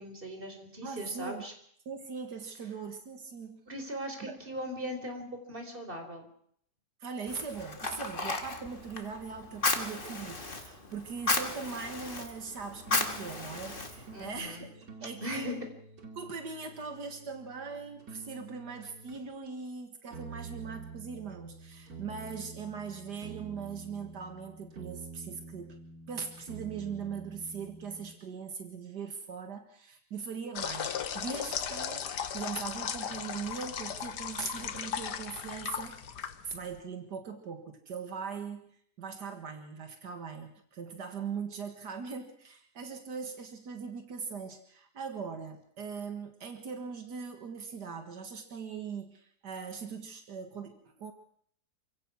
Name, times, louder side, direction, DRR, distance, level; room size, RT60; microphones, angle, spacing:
voice 1, 0.0-1.5 3.7-6.2 14.1-14.7 15.2-15.5, equal, 30° right, 5 dB, 4.4 m, -39 dB
voice 2, 0.8-1.4 1.9-3.6 4.2-4.3 7.0-15.7 16.2-25.8 26.1-36.0 36.2-51.1, right 5 dB, 85° right, 6 dB, 2.3 m, -40 dB
Fire, 7.3-14.5, left 3 dB, 30° left, 2.1 m, -35 dB
sound 1, 12.6-19.3 20.1-28.1, right 4 dB, 65° right, 3.0 m, -48 dB
sound 2, 30.5-36.8, left 8 dB, 80° left, 1.7 m, -37 dB
28.0 x 16.5 x 6.2 m, 0.64 s
omnidirectional pair, 1.7 m